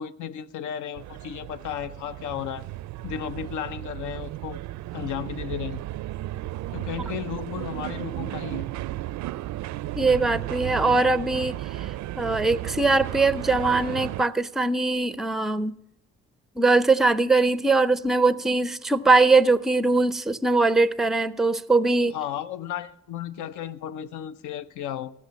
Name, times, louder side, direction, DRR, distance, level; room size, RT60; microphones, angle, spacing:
voice 1, 0.0-2.6 3.0-4.6 4.9-5.8 6.7-8.7 22.1-25.1, left 9 dB, 80° left, 0.7 m, -34 dB
sound 1, 0.9-14.2, right 15 dB, 70° right, 0.4 m, -34 dB
voice 2, 10.0-11.6 12.2-15.7 16.6-22.2, right 3 dB, ahead, 0.4 m, -21 dB
15.0 x 6.7 x 6.8 m
cardioid pair, 90°, 30 cm